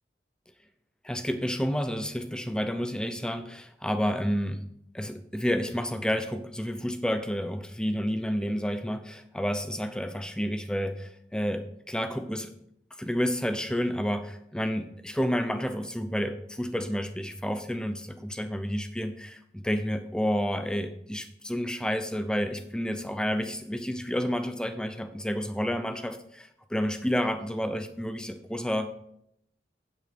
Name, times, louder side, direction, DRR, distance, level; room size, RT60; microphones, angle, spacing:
voice 1, 1.0-4.6 4.9-12.5 13.0-28.9, equal, 5° left, 9 dB, 0.6 m, -30 dB
9.4 x 8.1 x 4.4 m, 0.74 s
head